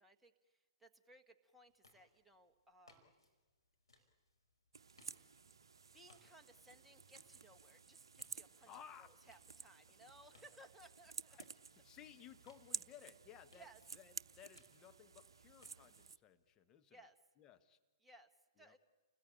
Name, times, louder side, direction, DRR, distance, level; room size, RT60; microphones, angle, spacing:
voice 1, 0.0-3.1 5.9-8.7 9.0-11.4 13.6-13.8 16.9-17.2 18.0-18.3 18.6-18.8, right 1 dB, 5° right, 4 dB, 1.6 m, -63 dB
sound 1, 1.7-16.5, left 2 dB, 85° left, 5.2 m, -73 dB
sound 2, 4.7-16.2, right 5 dB, 70° right, 0.7 m, -53 dB
voice 2, 8.7-9.1 11.3-11.5 11.8-13.7 13.9-17.0 17.4-17.8 18.6-18.8, left 9 dB, 25° left, 9 dB, 1.3 m, -59 dB
30.0 x 20.0 x 8.8 m, 1.3 s
figure-of-eight pair, 120°, 3 cm